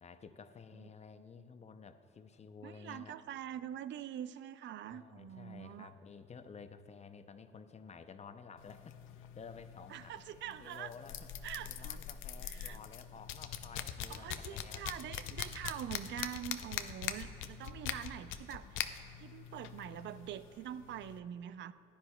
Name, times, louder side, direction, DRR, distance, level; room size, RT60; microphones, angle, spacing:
voice 1, 0.0-3.2 4.9-10.2 10.6-14.8 17.6-18.1, left 5 dB, 35° left, 10 dB, 0.6 m, -53 dB
voice 2, 2.6-5.9 9.9-10.9 11.4-12.0 12.4-12.8 14.1-18.9 19.2-21.7, right 10 dB, 65° right, 14 dB, 0.4 m, -44 dB
sound 1, 8.6-21.2, left 10 dB, 85° left, 0.5 m, -43 dB
14.5 x 10.0 x 2.2 m, 2.9 s
cardioid pair, 90°, 20 cm